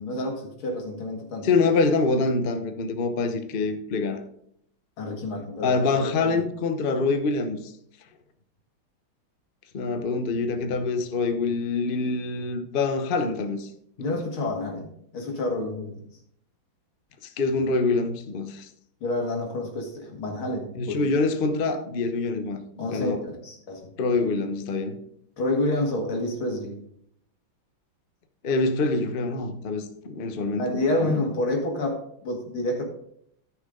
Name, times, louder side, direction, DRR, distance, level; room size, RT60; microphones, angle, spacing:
voice 1, 0.0-1.5 5.0-6.4 14.0-16.0 19.0-21.1 22.8-23.9 25.4-26.8 30.5-32.8, left 1 dB, 90° left, 2.8 m, -29 dB
voice 2, 1.4-4.2 5.6-7.7 9.7-13.7 14.1-14.2 17.2-18.7 20.8-23.2 24.0-25.0 28.4-31.2, left 3 dB, 45° left, 0.7 m, -25 dB
13.5 x 6.1 x 3.7 m
omnidirectional pair, 2.2 m